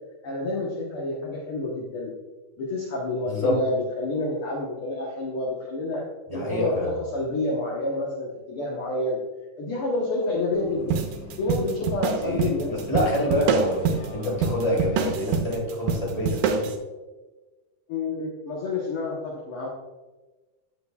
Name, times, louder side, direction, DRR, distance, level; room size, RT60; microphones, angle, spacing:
voice 1, 0.2-2.1 2.6-6.0 6.3-9.2 9.6-11.0 11.4-12.7 17.9-19.7, left 2 dB, 60° left, -2 dB, 1.5 m, -29 dB
voice 2, 3.3-3.6 6.3-6.9 12.2-13.8 14.1-16.6, left 1 dB, 10° left, -4 dB, 2.4 m, -26 dB
Bus, 10.5-15.5, left 1 dB, 80° left, 2.2 m, -44 dB
sound 1, 10.9-16.7, right 6 dB, 85° right, 2.2 m, -26 dB
9.2 x 8.3 x 2.3 m, 1.2 s
omnidirectional pair, 3.5 m